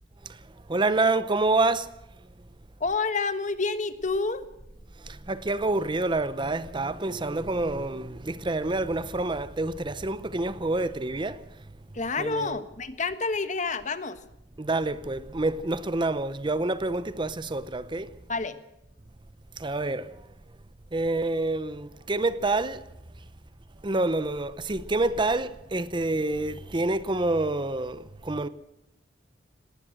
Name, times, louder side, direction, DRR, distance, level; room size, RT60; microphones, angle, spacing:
voice 1, 0.7-1.9 5.0-11.4 12.2-12.6 14.6-18.1 19.6-20.2 20.9-22.8 23.8-28.5, right 2 dB, 25° right, 0.7 m, -27 dB
voice 2, 2.8-4.4 11.9-14.2 18.3-18.6, left 4 dB, 40° left, 1.4 m, -29 dB
19.0 x 18.5 x 7.7 m
head